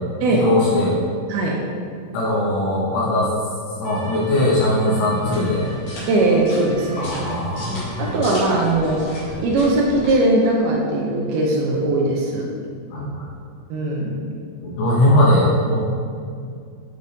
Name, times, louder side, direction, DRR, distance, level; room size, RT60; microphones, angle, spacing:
voice 1, 0.3-1.0 2.1-3.3 3.8-5.6 6.9-8.2 12.9-13.3 14.6-15.9, left 1 dB, 70° left, -6 dB, 2.8 m, -20 dB
voice 2, 1.3-1.6 6.1-7.1 7.6-12.5 13.7-14.2, right 2 dB, 85° right, -2 dB, 2.3 m, -20 dB
Trumpet, 3.8-9.2, right 1 dB, 70° right, 2.8 m, -41 dB
sound 1, 5.2-10.1, left 1 dB, 55° left, 1.9 m, -35 dB
9.8 x 3.3 x 4.0 m, 2.3 s
omnidirectional pair, 5.3 m